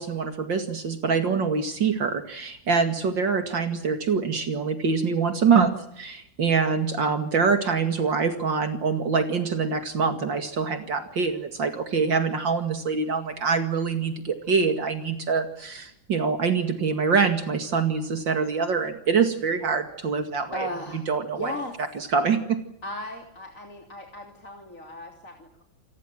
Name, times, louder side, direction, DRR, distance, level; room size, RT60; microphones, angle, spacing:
voice 1, 0.0-21.5 21.9-22.6, right 5 dB, 65° right, 7 dB, 2.9 m, -25 dB
voice 2, 20.5-21.0 21.4-21.8 22.8-25.6, equal, 40° left, 3 dB, 3.6 m, -36 dB
28.0 x 19.5 x 7.7 m, 0.75 s
omnidirectional pair, 2.2 m